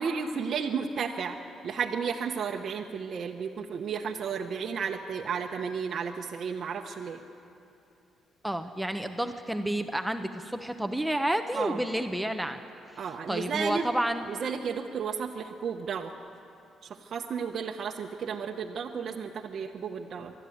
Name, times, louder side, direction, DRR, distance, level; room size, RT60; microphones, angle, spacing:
voice 1, 0.0-1.4 1.6-7.2 11.5-11.8 13.0-13.8 14.3-16.1 16.8-20.3, right 6 dB, 60° right, 1 dB, 1.0 m, -33 dB
voice 2, 8.4-12.6 13.3-14.2, right 1 dB, 5° right, 7 dB, 0.9 m, -30 dB
23.5 x 12.0 x 9.4 m, 2.7 s
cardioid pair, 90°, 0 cm